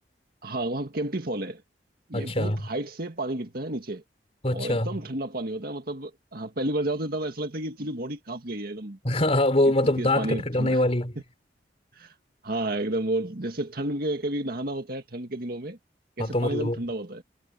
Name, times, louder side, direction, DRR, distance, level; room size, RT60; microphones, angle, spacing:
voice 1, 0.4-1.6 2.1-4.0 4.5-9.0 10.0-10.8 12.0-12.1 12.4-15.8 16.2-17.2, right 1 dB, 60° right, 1.9 m, -31 dB
voice 2, 2.1-2.6 4.4-4.9 9.0-11.2 16.2-16.8, left 1 dB, 35° left, 3.4 m, -24 dB
head